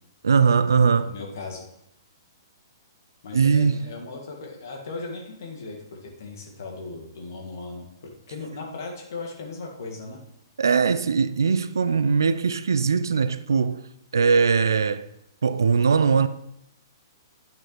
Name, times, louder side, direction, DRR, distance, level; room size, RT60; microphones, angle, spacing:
voice 1, 0.2-1.1 3.3-3.8 10.6-13.8 14.1-15.1 15.4-16.3, right 5 dB, 65° right, 0.4 m, -20 dB
voice 2, 1.0-1.7 3.2-7.8 8.3-10.2, left 3 dB, 55° left, 1.9 m, -37 dB
10.5 x 8.8 x 3.2 m
figure-of-eight pair, 115°, 2 cm